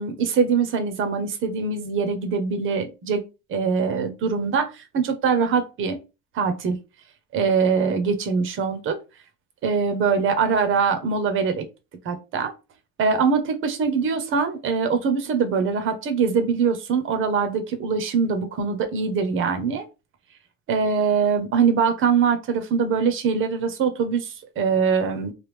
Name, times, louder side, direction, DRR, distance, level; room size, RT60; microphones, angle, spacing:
voice 1, 0.0-3.2 3.5-6.0 6.3-6.8 7.3-9.0 9.6-11.7 12.0-12.5 13.0-19.8 20.7-25.3, right 5 dB, 45° right, 8 dB, 0.8 m, -23 dB
3.3 x 2.3 x 3.2 m, 0.28 s
cardioid pair, 135°, 30 cm